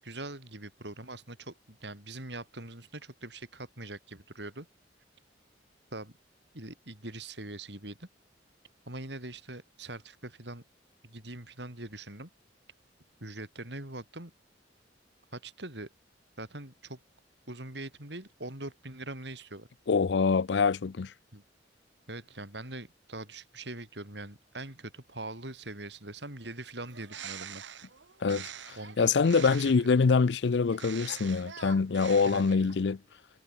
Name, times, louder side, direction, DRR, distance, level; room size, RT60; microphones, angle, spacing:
voice 1, 0.0-4.7 5.9-6.2 6.5-8.1 8.9-10.6 11.0-12.3 13.2-14.3 15.3-15.9 16.4-17.0 17.5-19.7 21.3-21.4 22.1-27.6 28.7-29.1 29.4-29.9 32.2-32.7, right 2 dB, 70° right, 6.5 m, -42 dB
voice 2, 19.9-21.1 28.2-28.4 29.0-33.0, left 5 dB, 70° left, 0.5 m, -25 dB
Bird, 26.8-29.9 30.7-32.8, right 8 dB, 85° right, 1.9 m, -45 dB
head